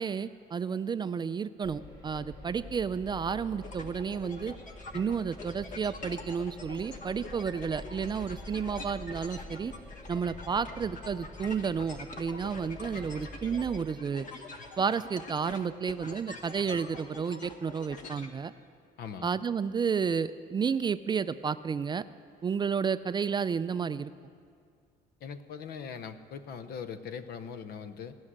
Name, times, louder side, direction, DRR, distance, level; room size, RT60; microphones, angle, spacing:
voice 1, 0.0-4.5 4.9-9.7 10.1-14.3 14.8-18.5 19.2-22.0 22.4-24.1, right 6 dB, 25° right, 13 dB, 0.3 m, -31 dB
sound 1, 1.6-13.8, left 1 dB, 20° left, 1.9 m, -47 dB
sound 2, 3.6-18.3, left 2 dB, 50° left, 1.3 m, -45 dB
voice 2, 19.0-19.3 25.2-28.2, left 6 dB, 65° left, 11 dB, 0.8 m, -41 dB
17.5 x 6.3 x 9.8 m, 2.2 s
cardioid pair, 110°, 17 cm